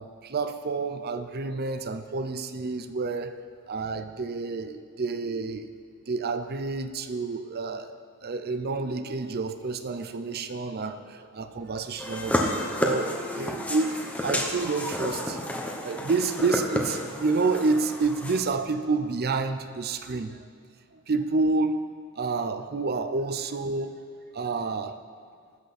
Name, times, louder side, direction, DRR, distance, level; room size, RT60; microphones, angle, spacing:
voice 1, 0.0-3.4 3.7-5.7 6.1-15.4 15.8-20.4 21.1-21.9 22.2-24.0 24.3-25.0, right 3 dB, 45° right, 10 dB, 0.6 m, -29 dB
sound 1, 12.0-18.4, left 1 dB, 5° left, 1.1 m, -31 dB
19.0 x 8.2 x 4.2 m, 2.2 s
head